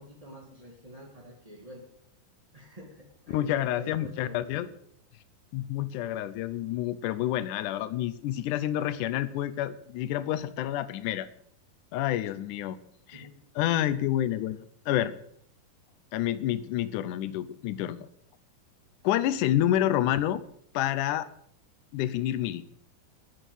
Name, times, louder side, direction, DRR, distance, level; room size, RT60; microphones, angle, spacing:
voice 1, 0.0-1.8 2.5-4.7 13.1-13.4, equal, 15° right, -2 dB, 1.2 m, -47 dB
voice 2, 3.3-4.7 5.5-11.3 11.9-12.8 13.1-13.3 13.6-15.1 16.1-18.1 19.0-20.4 20.7-21.3 21.9-22.6, left 12 dB, 80° left, 15 dB, 1.9 m, -28 dB
11.0 x 9.2 x 9.0 m, 0.67 s
omnidirectional pair, 4.4 m